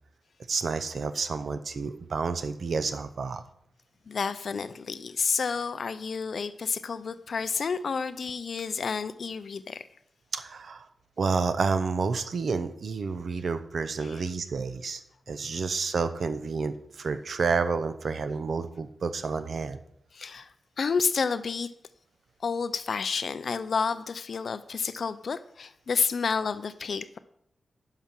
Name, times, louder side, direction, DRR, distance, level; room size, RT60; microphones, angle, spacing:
voice 1, 0.5-3.4 10.3-10.9 11.2-15.0 15.3-19.8, right 4 dB, 55° right, 11 dB, 0.7 m, -30 dB
voice 2, 4.1-9.9 14.0-14.2 20.1-20.5 20.8-21.7 22.4-27.2, left 5 dB, 55° left, 13 dB, 0.4 m, -30 dB
10.5 x 5.7 x 6.0 m, 0.73 s
wide cardioid pair, 135°, 0 cm